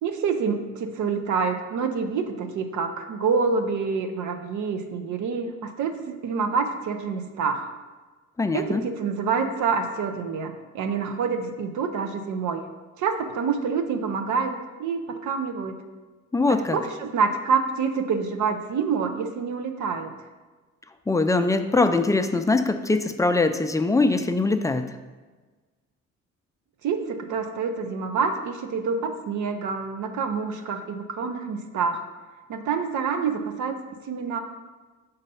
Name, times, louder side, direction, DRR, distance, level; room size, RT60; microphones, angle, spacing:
voice 1, 0.0-7.7 8.5-12.7 13.0-15.8 16.5-20.1 26.8-32.0 32.5-33.8 34.0-34.4, right 5 dB, 70° right, 7 dB, 0.7 m, -27 dB
voice 2, 8.4-8.8 16.3-16.8 21.1-24.9, left 3 dB, 10° left, 8 dB, 0.4 m, -22 dB
5.4 x 4.0 x 5.5 m, 1.3 s
cardioid pair, 90°, 30 cm